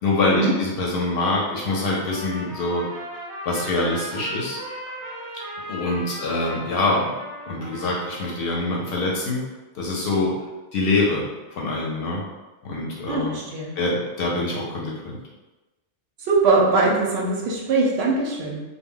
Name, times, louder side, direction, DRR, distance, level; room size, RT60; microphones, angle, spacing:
voice 1, 0.0-2.8 3.5-4.6 5.7-7.1 7.5-9.4 9.7-10.3 10.7-12.2 12.6-13.4 13.8-15.0, left 2 dB, 65° left, -3 dB, 0.7 m, -24 dB
Trumpet, 1.6-8.7, equal, 35° right, 0.6 m, -37 dB
voice 2, 13.1-13.7 16.3-18.6, right 3 dB, 70° right, -2 dB, 0.8 m, -21 dB
2.1 x 2.1 x 3.6 m, 1.1 s
omnidirectional pair, 1.2 m